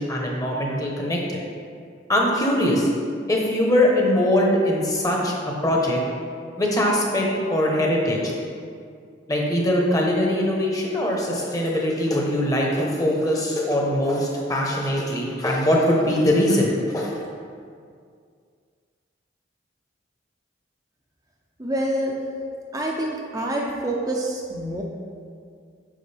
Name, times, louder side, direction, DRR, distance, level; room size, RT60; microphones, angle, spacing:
voice 1, 0.0-1.4 2.1-2.9 3.3-5.3 5.6-6.0 6.6-8.3 9.3-17.1, left 1 dB, 20° left, -2 dB, 1.1 m, -22 dB
voice 2, 21.6-22.2 22.7-24.8, right 1 dB, 20° right, -2 dB, 0.7 m, -26 dB
8.8 x 6.2 x 3.4 m, 2.2 s
head